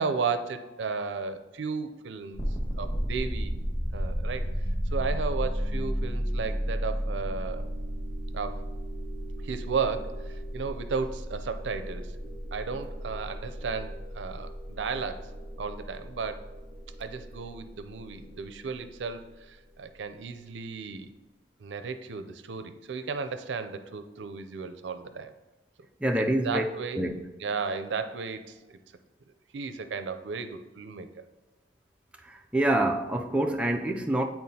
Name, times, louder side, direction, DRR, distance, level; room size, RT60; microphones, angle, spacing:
voice 1, 0.0-2.4 2.8-3.5 3.9-4.6 4.9-7.7 8.3-8.7 9.4-12.2 12.5-15.3 15.6-16.4 17.0-21.1 21.6-25.3 26.2-27.1 27.4-28.8 29.5-31.1, right 5 dB, 75° right, 0.5 m, -34 dB
sound 1, 2.4-19.3, equal, 25° left, 1.3 m, -34 dB
voice 2, 26.0-26.6 27.0-27.1 32.2-34.2, right 1 dB, 5° right, 0.3 m, -26 dB
9.4 x 4.5 x 2.8 m
head